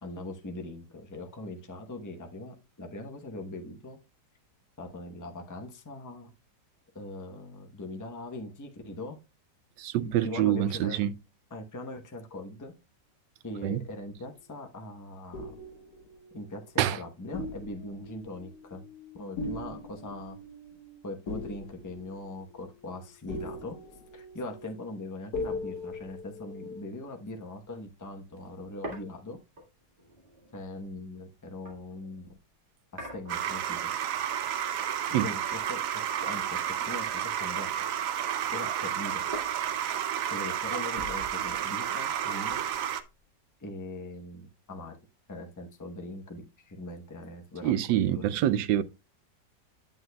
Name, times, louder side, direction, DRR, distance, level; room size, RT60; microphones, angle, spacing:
voice 1, 0.0-4.0 4.8-6.3 6.9-9.2 10.0-11.0 11.5-12.7 13.4-15.5 16.3-18.8 19.1-20.4 21.0-23.8 24.1-29.4 30.5-32.3 32.9-33.9 35.2-37.7 38.5-39.3 40.3-42.6 43.6-45.0 45.3-48.4, left 2 dB, 20° left, 0.5 m, -41 dB
voice 2, 9.8-11.1 13.6-13.8 16.8-17.0 35.1-35.3 47.6-48.8, right 12 dB, 80° right, 1.2 m, -26 dB
sound 1, 13.7-14.7 15.3-17.0 17.3-26.9, left 2 dB, 70° left, 2.3 m, -41 dB
sound 2, 28.0-32.4 33.0-34.1 34.4-35.8 36.1-37.8 38.1-43.3, equal, 30° right, 1.9 m, -47 dB
sound 3, 33.3-43.0, right 10 dB, 65° right, 0.9 m, -31 dB
8.7 x 7.9 x 2.2 m
omnidirectional pair, 1.9 m